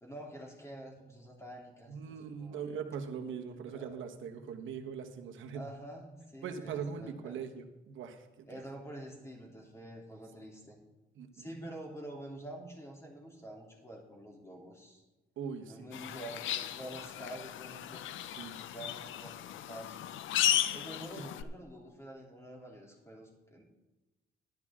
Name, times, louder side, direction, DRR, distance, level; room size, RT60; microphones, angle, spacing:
voice 1, 0.0-2.6 3.7-3.9 5.5-7.4 8.5-10.8 11.3-15.0 15.7-18.0 18.5-20.2 20.7-23.6, right 1 dB, 15° left, -1 dB, 3.1 m, -47 dB
voice 2, 1.9-5.7 6.4-8.6 11.1-11.5 15.4-15.9 18.2-18.6 20.6-20.7 21.2-21.3, right 6 dB, 75° right, 5 dB, 1.3 m, -41 dB
sound 1, 15.9-21.4, left 11 dB, 75° left, 0.5 m, -35 dB
12.0 x 10.5 x 3.7 m, 1.1 s
cardioid pair, 90°, 20 cm